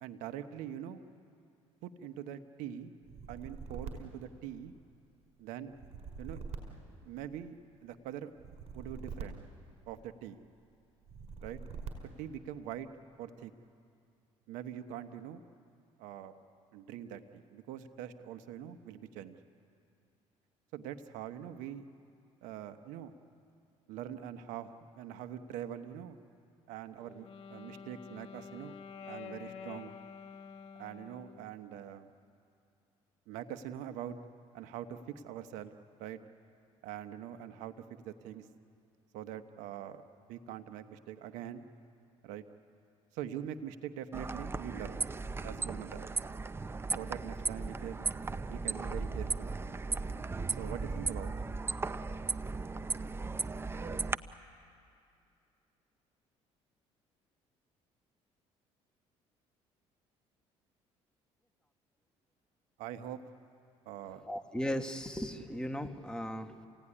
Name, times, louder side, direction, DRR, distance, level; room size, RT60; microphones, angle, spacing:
voice 1, 0.0-1.0 1.8-2.9 3.3-4.7 5.4-5.7 6.2-6.4 7.0-8.3 8.7-9.4 9.9-10.4 11.4-11.6 12.2-12.9 13.2-13.5 14.5-15.4 16.0-16.3 16.7-19.4 20.7-21.8 22.4-23.1 23.9-26.2 26.7-28.8 29.1-29.9 30.8-32.1 33.3-34.2 34.5-35.0 35.2-35.7 36.0-36.2 36.8-37.7 38.0-38.5 39.1-40.0 40.3-41.7 42.2-42.4 43.1-45.0 45.4-46.1 46.9-48.1 48.5-49.5 50.6-51.3 62.8-63.2 63.8-64.2, right 10 dB, 85° right, 9 dB, 1.1 m, -43 dB
sound 1, 3.0-5.0 5.7-7.6 8.4-10.3 11.0-12.4, right 5 dB, 55° right, 5.0 m, -45 dB
Wind instrument woodwind instrument, 27.0-31.5, left 6 dB, 55° left, 1.2 m, -48 dB
sound 2, 44.1-54.2, right 3 dB, 20° right, 0.7 m, -36 dB
voice 2, 64.3-66.7, equal, 5° left, 5 dB, 1.6 m, -37 dB
28.5 x 17.0 x 10.0 m, 2.5 s
cardioid pair, 95°, 13 cm